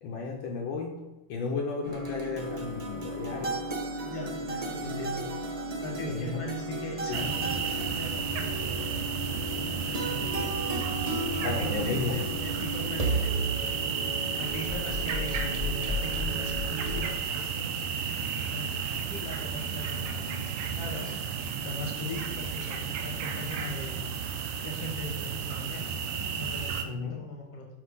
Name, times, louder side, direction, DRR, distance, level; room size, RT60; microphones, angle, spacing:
voice 1, 0.0-1.0 1.3-3.6 6.1-6.4 7.1-7.3 11.4-12.2 26.8-27.2, left 4 dB, 70° left, 1 dB, 1.3 m, -33 dB
sound 1, 1.8-17.1, right 1 dB, 55° right, 0.4 m, -34 dB
voice 2, 4.0-5.3 5.8-10.5 11.3-14.0 14.4-17.9 18.3-21.1 21.6-24.0 24.6-25.9 26.3-27.7, left 1 dB, 25° left, 0 dB, 1.2 m, -40 dB
sound 2, 7.1-26.8, right 7 dB, 90° right, 1.6 m, -33 dB
6.1 x 5.0 x 3.7 m, 1.1 s
omnidirectional pair, 2.4 m